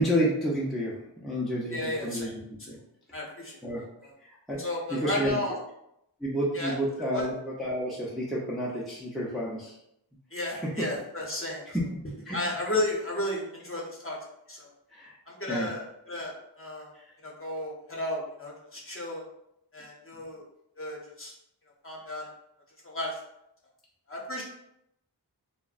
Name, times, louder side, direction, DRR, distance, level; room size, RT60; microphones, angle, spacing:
voice 1, 0.0-2.3 2.7-2.8 3.6-3.8 4.3-4.6 4.9-5.4 6.2-9.8 12.3-12.4 14.9-15.1 15.5-15.7 16.9-17.0, equal, ahead, -5 dB, 0.4 m, -30 dB
voice 2, 1.7-2.3 3.1-3.6 4.0-4.1 4.6-5.6 6.5-6.7 7.1-7.3 10.3-11.6 12.3-14.2 14.5-14.7 15.3-16.9 17.2-19.2 19.7-20.4 20.8-21.3 21.8-22.3 22.8-23.2 24.1-24.4, left 1 dB, 30° left, -3 dB, 0.7 m, -33 dB
2.5 x 2.1 x 2.4 m, 0.79 s
wide cardioid pair, 60°, 40 cm